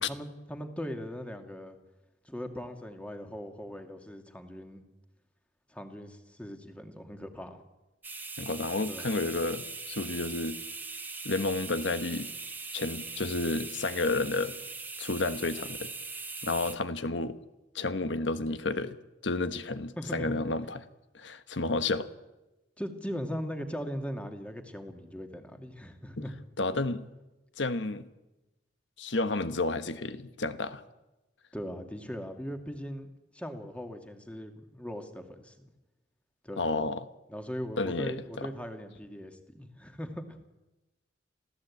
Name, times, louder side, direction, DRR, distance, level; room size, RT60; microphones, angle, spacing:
voice 1, 0.0-1.8 2.2-4.8 5.7-7.6 8.9-9.1 20.0-20.3 22.8-26.4 31.5-35.7 36.4-36.7 37.3-40.4, equal, 5° left, 5 dB, 2.0 m, -39 dB
sound 1, 8.0-16.8, right 4 dB, 10° right, 1.4 m, -40 dB
voice 2, 8.4-10.6 11.2-12.3 12.7-14.5 15.0-15.9 16.4-17.4 17.7-19.0 19.2-20.8 21.1-22.1 26.2-26.3 26.6-27.1 27.6-28.1 29.0-30.8 36.6-37.0 37.8-38.5, left 3 dB, 80° left, 11 dB, 1.3 m, -31 dB
27.0 x 16.0 x 8.5 m, 1.0 s
head